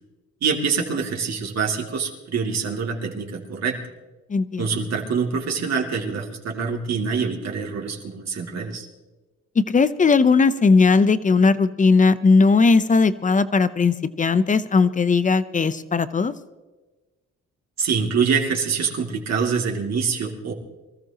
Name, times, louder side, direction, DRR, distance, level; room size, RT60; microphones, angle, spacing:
voice 1, 0.4-3.8 4.6-8.9 17.8-20.5, right 5 dB, 60° right, 0 dB, 2.7 m, -25 dB
voice 2, 4.3-4.8 9.6-16.3, left 4 dB, 25° left, 14 dB, 0.8 m, -18 dB
24.5 x 14.0 x 3.0 m, 1.2 s
cardioid pair, 90°, 30 cm